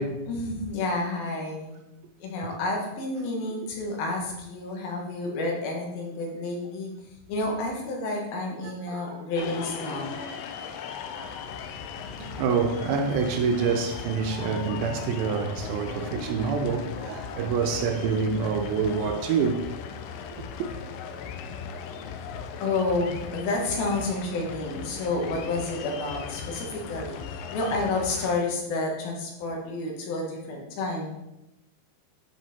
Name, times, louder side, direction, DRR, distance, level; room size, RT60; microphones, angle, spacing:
voice 1, 0.3-1.8 2.2-6.9 7.3-10.1 22.6-31.1, left 2 dB, 70° left, 3.2 m, -30 dB
voice 2, 8.9-9.2 12.2-19.6, right 5 dB, 80° right, 2.4 m, -26 dB
sound 1, 9.4-28.4, left 6 dB, 90° left, 2.7 m, -38 dB
10.0 x 5.6 x 4.2 m
omnidirectional pair, 4.5 m